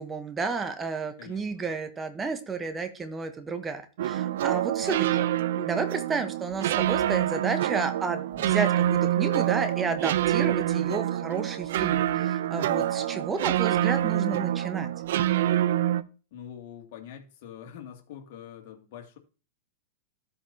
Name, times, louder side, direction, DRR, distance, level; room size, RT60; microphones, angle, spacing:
voice 1, 0.0-5.3 5.6-14.9, right 4 dB, 20° right, 1.1 m, -32 dB
voice 2, 1.2-1.7 8.3-8.6 10.3-10.5 12.8-13.1 16.3-19.2, left 9 dB, 60° left, 2.3 m, -45 dB
sound 1, 4.0-16.0, right 12 dB, 70° right, 0.5 m, -26 dB
13.0 x 5.3 x 2.8 m
hypercardioid pair, 115°, 0 cm